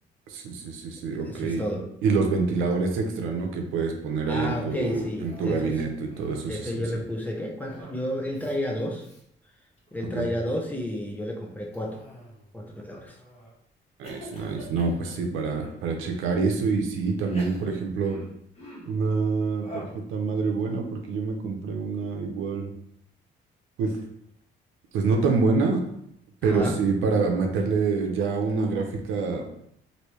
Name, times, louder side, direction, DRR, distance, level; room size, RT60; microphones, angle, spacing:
voice 1, 0.3-1.6 2.0-7.0 10.1-10.3 14.0-18.2 18.9-22.7 23.8-24.0 24.9-25.8 26.4-29.4, right 4 dB, 90° right, 3 dB, 0.6 m, -26 dB
voice 2, 1.2-1.8 4.3-5.8 6.5-9.1 9.9-12.0 12.5-13.2 26.4-26.8, equal, 10° left, 0 dB, 0.7 m, -31 dB
Cough, 4.5-5.7 6.0-6.7 7.7-8.1 8.3-8.6 9.0-9.2 9.8-10.2 11.7-12.5 13.1-13.5 14.0-15.8 16.5-16.6 17.2-19.0 19.6-20.1, equal, 30° left, 1.3 m, -45 dB
3.1 x 2.6 x 3.0 m, 0.72 s
cardioid pair, 90°, 20 cm